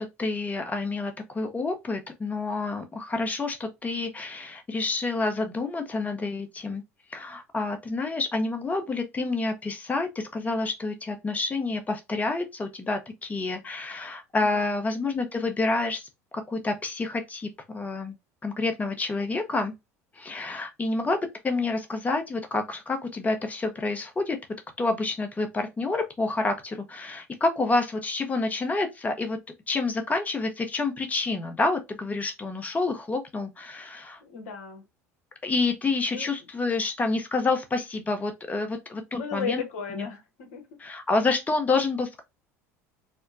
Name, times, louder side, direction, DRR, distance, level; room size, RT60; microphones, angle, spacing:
voice 1, 0.0-6.8 7.1-18.1 18.4-19.7 20.1-24.4 24.8-29.4 29.7-34.2 35.4-39.6 40.0-40.1 40.8-42.2, left 3 dB, 20° left, 0.7 m, -28 dB
voice 2, 14.4-14.7 34.2-34.8 36.1-36.3 39.1-40.7, left 5 dB, 65° left, 1.1 m, -35 dB
4.3 x 2.1 x 2.5 m
hypercardioid pair, 70°, 8 cm